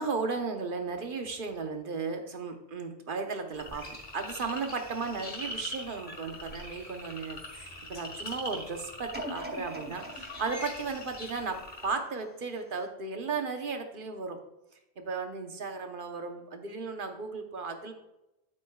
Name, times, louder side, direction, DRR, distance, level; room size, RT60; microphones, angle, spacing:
voice 1, 0.0-14.4 15.0-17.9, right 4 dB, 55° right, 6 dB, 1.1 m, -35 dB
sound 1, 3.5-11.9, left 1 dB, 50° left, 1.7 m, -42 dB
sound 2, 9.1-12.2 12.7-12.8, right 1 dB, 10° right, 0.9 m, -43 dB
8.6 x 8.1 x 2.3 m, 0.92 s
omnidirectional pair, 1.1 m